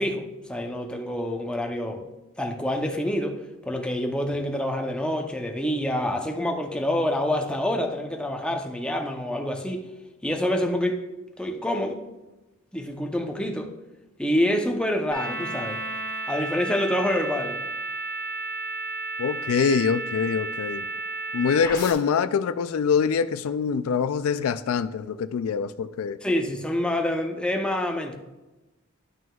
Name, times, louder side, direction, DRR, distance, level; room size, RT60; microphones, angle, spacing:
voice 1, 0.0-2.0 2.4-9.9 10.2-11.0 11.4-12.0 12.7-13.7 14.2-15.8 16.3-17.6 26.2-28.1, left 1 dB, 5° left, 0.7 m, -27 dB
sound 1, 15.1-21.9, right 2 dB, 20° left, 2.4 m, -32 dB
voice 2, 19.2-20.8 21.3-26.2, left 6 dB, 85° left, 0.4 m, -24 dB
11.0 x 6.1 x 2.3 m
head